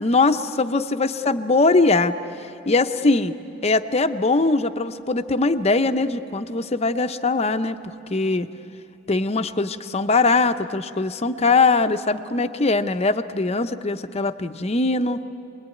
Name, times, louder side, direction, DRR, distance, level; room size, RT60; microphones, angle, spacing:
voice 1, 0.0-2.1 2.7-3.3 3.6-7.8 8.1-8.5 9.1-15.2, left 3 dB, 35° left, 9 dB, 0.7 m, -21 dB
26.0 x 21.0 x 9.3 m, 2.7 s
head